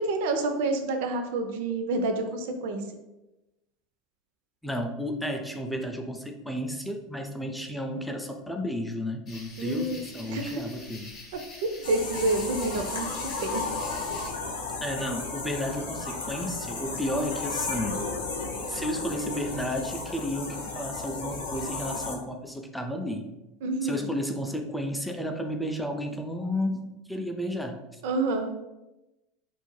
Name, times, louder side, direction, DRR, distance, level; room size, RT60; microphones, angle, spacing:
voice 1, 0.0-2.8 9.6-10.6 11.9-13.1 13.4-13.7 23.6-24.1 28.0-28.6, right 2 dB, 70° right, 6 dB, 0.4 m, -28 dB
voice 2, 4.6-11.2 14.8-18.0 18.7-23.3 23.8-28.0, equal, ahead, 4 dB, 0.4 m, -32 dB
sound 1, 9.3-14.3, left 3 dB, 40° left, 0.7 m, -46 dB
sound 2, 11.8-22.2, left 3 dB, 85° left, 0.5 m, -34 dB
2.5 x 2.1 x 3.1 m, 0.99 s
hypercardioid pair, 90°, 0 cm